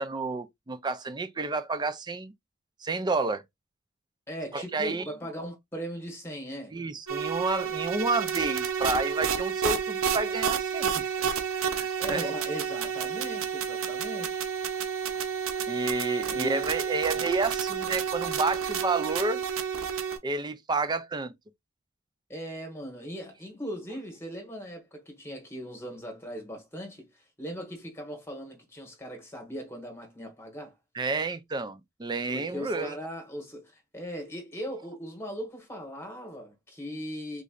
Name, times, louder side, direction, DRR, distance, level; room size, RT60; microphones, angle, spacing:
voice 1, 0.0-2.3 2.8-3.4 4.5-5.1 6.7-11.3 11.7-12.3 15.7-19.4 20.2-21.3 30.9-33.0, right 3 dB, 20° right, 0.4 m, -30 dB
voice 2, 4.3-6.8 12.0-14.4 16.3-16.6 17.1-17.3 22.3-30.7 32.3-37.4, equal, 10° left, 1.4 m, -39 dB
sound 1, 7.1-20.2, right 7 dB, 90° right, 0.7 m, -30 dB
3.8 x 3.1 x 2.4 m
head